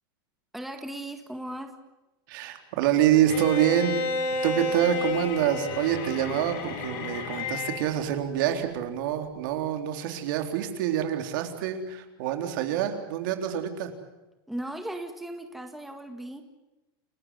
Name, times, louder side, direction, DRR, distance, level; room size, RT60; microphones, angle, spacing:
voice 1, 0.5-1.8 14.5-16.4, right 1 dB, ahead, 5 dB, 1.8 m, -37 dB
voice 2, 2.3-3.9 4.4-13.9, right 11 dB, 60° right, 6 dB, 3.8 m, -26 dB
Bowed string instrument, 3.3-8.0, left 3 dB, 50° left, 5.4 m, -31 dB
29.5 x 15.0 x 9.4 m, 1.0 s
supercardioid pair, 140°, 12 cm